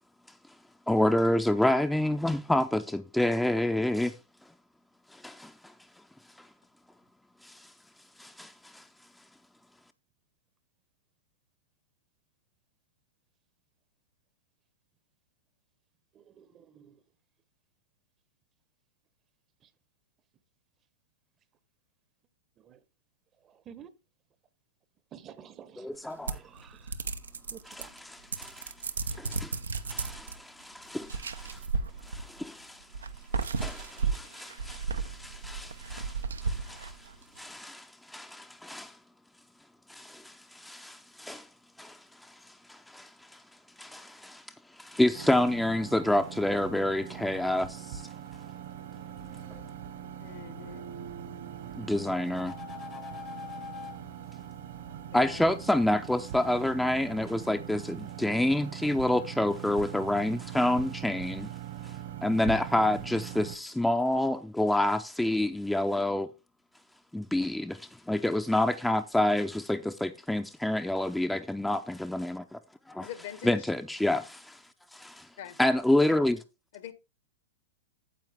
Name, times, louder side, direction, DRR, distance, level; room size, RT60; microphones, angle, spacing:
voice 1, 0.9-4.1 5.1-5.7 6.4-6.5 7.4-7.7 8.2-8.8 25.8-26.4 27.7-28.7 29.1-29.6 29.9-31.6 32.0-32.9 33.3-37.0 37.4-39.0 39.9-41.5 41.8-43.4 43.8-44.4 44.7-48.0 51.8-52.5 55.1-61.5 61.8-61.9 62.2-66.3 67.1-72.6 72.9-73.1 73.4-74.6 74.9-75.3 75.6-76.4, left 1 dB, 5° left, 0.6 m, -28 dB
voice 2, 16.1-17.0 22.6-22.8 23.4-23.9 25.1-25.9 26.3-27.0 27.5-27.9, right 8 dB, 30° right, 0.9 m, -51 dB
sound 1, 26.3-28.0 28.3-30.4 31.0-32.4 32.9-37.2, right 4 dB, 85° right, 0.9 m, -34 dB
sound 2, 45.1-63.6, right 10 dB, 65° right, 1.7 m, -42 dB
sound 3, 48.8-49.6 52.0-54.0, left 7 dB, 25° left, 0.9 m, -44 dB
voice 3, 50.2-50.8 55.1-55.5 73.0-73.7 75.4-75.6 76.7-76.9, left 10 dB, 60° left, 1.4 m, -43 dB
9.4 x 7.5 x 3.5 m
hypercardioid pair, 110°, 0 cm